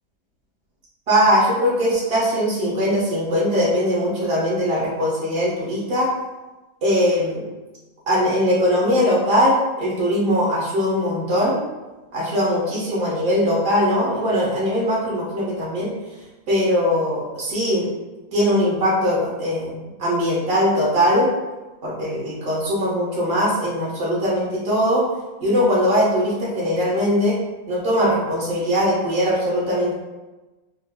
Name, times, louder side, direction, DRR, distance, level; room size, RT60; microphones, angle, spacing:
voice 1, 1.1-6.1 6.8-7.4 8.1-11.6 12.1-15.9 16.5-17.9 18.3-21.3 21.8-25.0 25.4-27.4 27.7-29.9, equal, 40° right, -6 dB, 1.3 m, -20 dB
5.6 x 2.2 x 2.2 m, 1.1 s
omnidirectional pair, 1.7 m